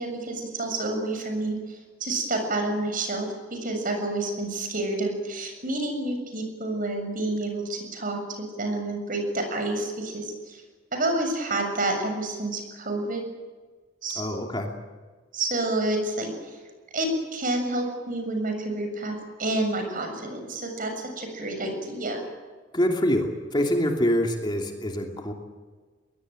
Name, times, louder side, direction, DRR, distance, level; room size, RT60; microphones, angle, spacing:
voice 1, 0.0-10.6 10.9-13.2 14.0-14.3 15.3-16.6 16.9-22.2, right 2 dB, 50° right, 5 dB, 7.0 m, -29 dB
voice 2, 14.1-14.7 22.7-25.3, equal, 25° left, 2 dB, 2.9 m, -25 dB
22.5 x 21.0 x 9.0 m, 1.4 s
head